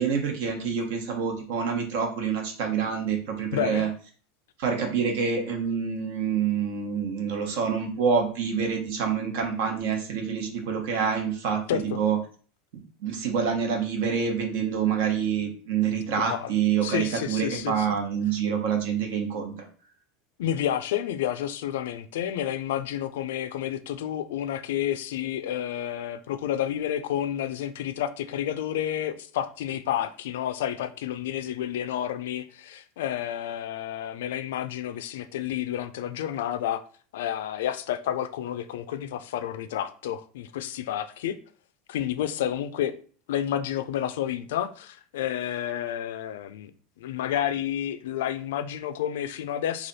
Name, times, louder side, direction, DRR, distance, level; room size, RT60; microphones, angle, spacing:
voice 1, 0.0-3.9 4.6-12.2 13.0-19.5, right 6 dB, 65° right, 1.0 m, -27 dB
voice 2, 3.5-3.9 11.7-12.0 16.3-16.5 16.8-17.9 20.4-36.8 37.1-41.3 41.9-42.9 43.3-46.7 47.0-49.9, left 10 dB, 85° left, 0.4 m, -30 dB
3.3 x 2.4 x 4.0 m
supercardioid pair, 150°, 0 cm